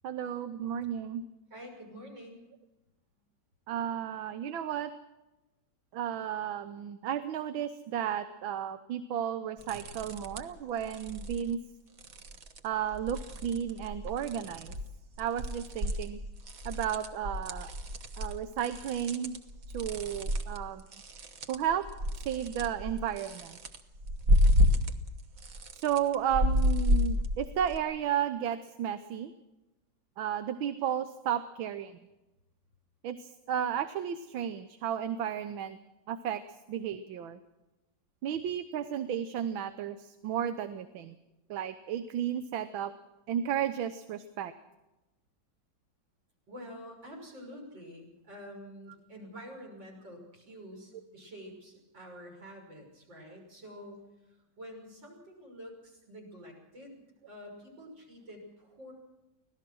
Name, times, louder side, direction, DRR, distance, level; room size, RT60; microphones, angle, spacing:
voice 1, 0.0-1.2 3.7-4.9 5.9-11.6 12.6-14.7 15.2-16.2 16.6-17.7 18.2-19.4 19.7-20.8 21.5-21.8 22.2-23.6 25.7-29.3 30.2-32.0 33.0-35.8 36.1-36.4 36.7-37.4 38.2-41.2 41.5-42.9 43.3-44.5, right 9 dB, 80° right, 10 dB, 1.7 m, -33 dB
voice 2, 1.5-2.4 46.5-54.0 54.3-58.9, equal, 65° right, 1 dB, 6.8 m, -48 dB
sound 1, 9.6-10.6 10.8-11.4 12.0-12.6 12.9-14.9 15.2-25.1 25.4-27.8, left 1 dB, 50° right, 1.5 m, -30 dB
25.0 x 17.5 x 6.2 m, 1.0 s
omnidirectional pair, 2.1 m